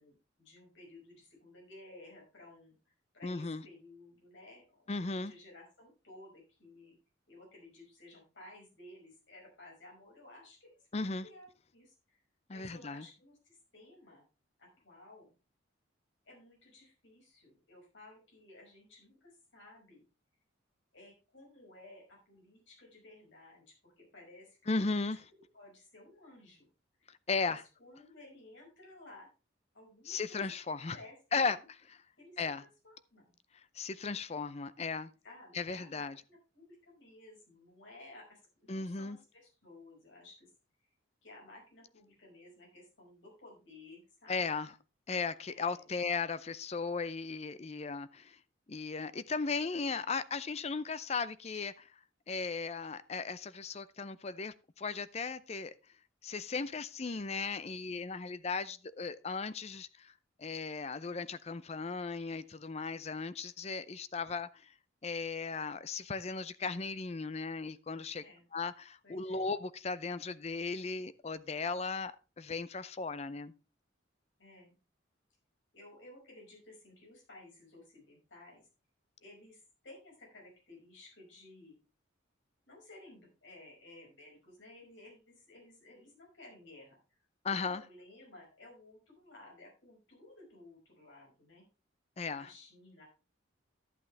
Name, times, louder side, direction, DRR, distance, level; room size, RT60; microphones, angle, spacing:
voice 1, 0.0-2.7 3.1-7.0 7.3-12.2 12.5-14.2 14.6-15.3 16.2-20.0 20.9-25.0 25.3-26.7 27.0-29.3 29.7-30.4 30.9-31.4 32.2-32.4 32.8-33.3 35.2-40.5 41.2-44.5 45.5-45.9 68.1-68.4 69.0-69.5 74.4-74.8 75.7-78.6 79.2-81.8 82.6-87.2 87.5-91.7 92.4-93.0, left 2 dB, 70° left, 5.4 m, -56 dB
voice 2, 3.2-3.6 4.9-5.3 10.9-11.3 12.5-13.1 24.7-25.2 27.3-27.6 30.1-31.0 31.3-31.6 31.9-32.0 32.4-32.6 33.5-35.1 35.5-36.2 38.7-39.2 44.3-44.7 45.1-48.4 48.7-51.9 52.3-55.7 56.2-60.1 60.4-64.7 65.0-68.2 68.5-73.5 87.4-87.8 92.2-92.5, left 4 dB, 35° left, 0.5 m, -36 dB
11.5 x 8.4 x 3.3 m
head